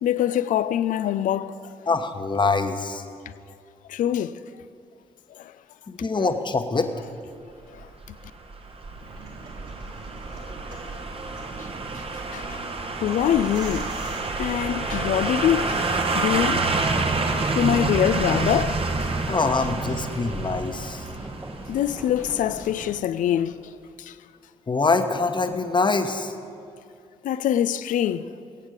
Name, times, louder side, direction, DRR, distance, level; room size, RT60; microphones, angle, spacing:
voice 1, 0.0-1.7 3.9-4.4 5.4-5.5 12.3-12.6 13.0-13.9 14.4-15.8 16.1-16.9 17.5-18.8 19.3-19.4 21.7-23.6 24.0-24.1 27.2-28.3, left 10 dB, 55° left, 0.5 m, -24 dB
voice 2, 1.9-3.0 5.9-6.9 19.2-21.1 24.7-26.3, left 3 dB, 30° left, 1.2 m, -24 dB
sound 1, 7.8-22.7 23.0-23.1, right 3 dB, 35° right, 1.2 m, -28 dB
sound 2, 9.0-15.1, right 2 dB, 75° right, 3.2 m, -43 dB
sound 3, 15.9-23.0, right 1 dB, 15° right, 1.1 m, -39 dB
20.0 x 8.8 x 5.1 m
hypercardioid pair, 40°, 16 cm